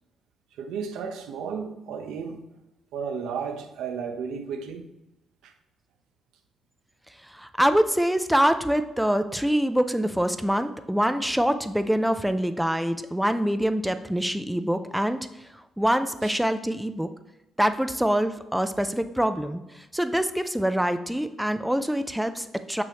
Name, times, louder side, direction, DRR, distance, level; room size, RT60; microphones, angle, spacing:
voice 1, 0.6-2.4 2.9-4.8 5.4-5.5 16.2-16.4, right 6 dB, 85° right, 0.7 m, -33 dB
voice 2, 7.3-17.1 17.6-22.8, equal, 5° right, 0.4 m, -25 dB
6.2 x 6.1 x 2.9 m
cardioid pair, 90°, 0 cm